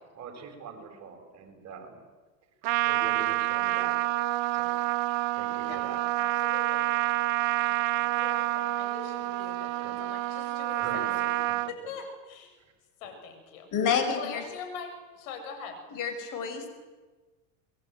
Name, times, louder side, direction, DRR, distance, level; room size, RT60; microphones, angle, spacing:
voice 1, 0.2-2.0 2.9-4.0 4.6-4.7 5.4-6.0 9.8-10.0 10.8-11.2, right 5 dB, 40° right, 5 dB, 7.5 m, -42 dB
Trumpet, 2.6-11.7, right 18 dB, 55° right, 1.1 m, -28 dB
voice 2, 6.2-6.9 7.9-12.5 13.0-15.8, left 5 dB, 70° left, 6 dB, 7.6 m, -43 dB
voice 3, 13.7-14.4 15.9-16.7, left 6 dB, 45° left, 7 dB, 6.5 m, -28 dB
28.0 x 22.0 x 9.5 m, 1.3 s
supercardioid pair, 110°, 42 cm